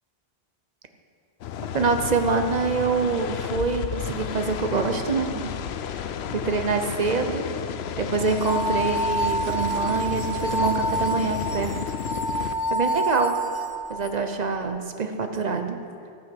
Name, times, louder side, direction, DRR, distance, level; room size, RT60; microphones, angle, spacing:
sound 1, 1.4-12.5, left 8 dB, 70° left, 0.8 m, -32 dB
voice 1, 1.7-5.5 5.9-7.5 8.0-12.0 12.7-13.3 13.9-15.8, right 4 dB, 40° right, 6 dB, 0.8 m, -26 dB
sound 2, 8.3-14.1, right 1 dB, 25° left, 0.6 m, -28 dB
14.0 x 5.8 x 7.7 m, 2.4 s
omnidirectional pair, 1.2 m